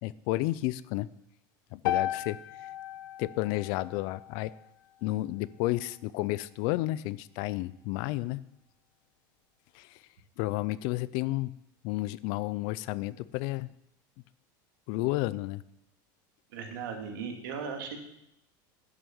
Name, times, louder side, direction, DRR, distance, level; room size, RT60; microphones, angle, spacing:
voice 1, 0.0-1.1 1.7-2.4 3.2-4.5 5.0-8.4 9.7-10.0 10.4-11.5 11.8-13.7 14.9-15.6, left 17 dB, 45° left, 19 dB, 0.3 m, -31 dB
sound 1, 1.8-6.0, left 12 dB, 90° left, 0.9 m, -36 dB
voice 2, 16.5-18.0, right 6 dB, 85° right, 3 dB, 2.2 m, -37 dB
11.0 x 6.4 x 6.9 m, 0.80 s
supercardioid pair, 180°, 11 cm